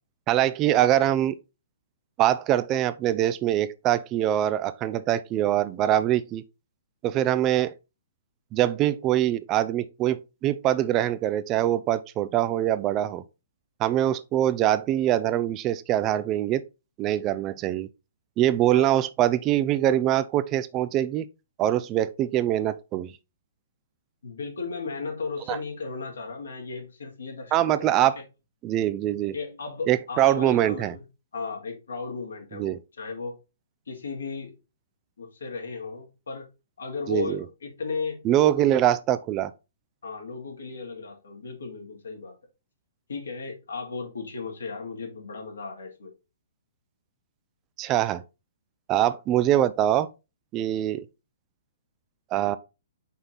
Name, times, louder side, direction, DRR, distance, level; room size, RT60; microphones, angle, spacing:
voice 1, 0.3-1.3 2.2-6.4 7.0-7.7 8.5-13.2 13.8-16.6 17.0-17.9 18.4-21.2 21.6-23.1 25.5-25.6 27.5-28.2 28.6-29.3 29.9-30.9 32.5-32.8 37.1-37.4 38.2-39.5 47.8-48.2 48.9-50.1 50.5-51.0 52.3-52.6, right 12 dB, 30° right, 0.4 m, -23 dB
voice 2, 24.2-28.2 29.3-31.0 31.3-33.4 33.9-34.5 35.2-36.5 36.8-38.3 38.5-38.8 40.0-42.4 43.1-46.1, left 4 dB, 80° left, 2.4 m, -35 dB
5.5 x 4.4 x 3.9 m
hypercardioid pair, 125°, 0 cm